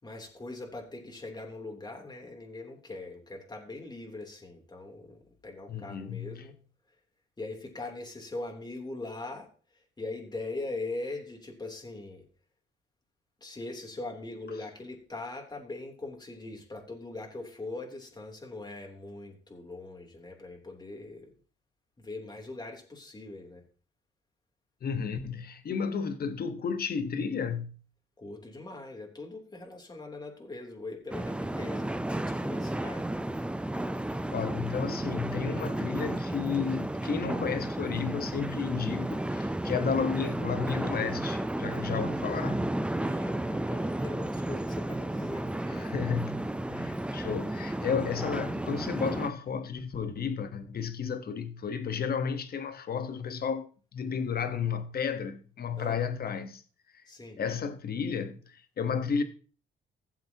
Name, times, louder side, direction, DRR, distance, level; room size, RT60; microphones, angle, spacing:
voice 1, 0.0-6.5 7.4-9.5 9.7-12.3 13.4-21.3 22.0-23.6 28.2-33.1 43.0-45.9 46.4-46.5 55.8-56.0 57.1-57.4, left 2 dB, 20° left, 3.3 m, -41 dB
voice 2, 5.7-6.5 24.8-27.7 34.3-42.7 45.7-46.4 46.7-56.6 57.4-59.2, left 6 dB, 50° left, 1.3 m, -32 dB
sound 1, 31.1-49.3, right 1 dB, 5° right, 0.6 m, -33 dB
16.5 x 7.4 x 2.9 m
cardioid pair, 90°, 20 cm